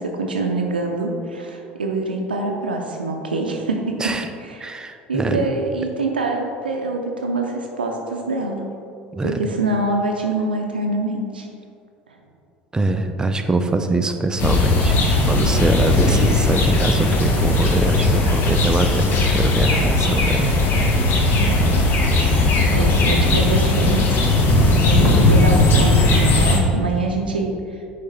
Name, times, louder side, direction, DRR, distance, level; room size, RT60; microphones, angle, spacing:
voice 1, 0.0-4.7 5.1-8.7 9.2-11.5 12.1-12.2 21.4-21.9 22.2-24.0 24.6-27.9, right 2 dB, 80° right, 1 dB, 0.5 m, -25 dB
voice 2, 4.6-5.5 9.1-9.5 12.7-15.0 15.3-20.5, right 2 dB, 15° right, 7 dB, 0.5 m, -23 dB
sound 1, 14.4-26.6, left 2 dB, 45° left, 0.9 m, -17 dB
9.4 x 3.3 x 4.1 m, 2.4 s
figure-of-eight pair, 65°, 5 cm